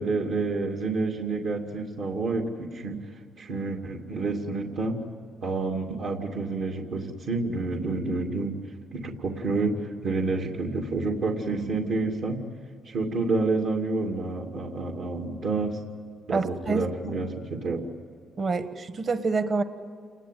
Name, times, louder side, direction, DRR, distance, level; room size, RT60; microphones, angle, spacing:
voice 1, 0.0-3.0 3.4-5.0 5.4-8.6 8.9-9.7 10.0-12.4 12.8-15.8 16.3-17.9, right 3 dB, 75° right, 0 dB, 2.5 m, -29 dB
voice 2, 16.3-16.9 18.4-19.6, right 4 dB, 45° right, 10 dB, 1.4 m, -27 dB
29.0 x 20.0 x 9.3 m, 2.3 s
cardioid pair, 90°, 0 cm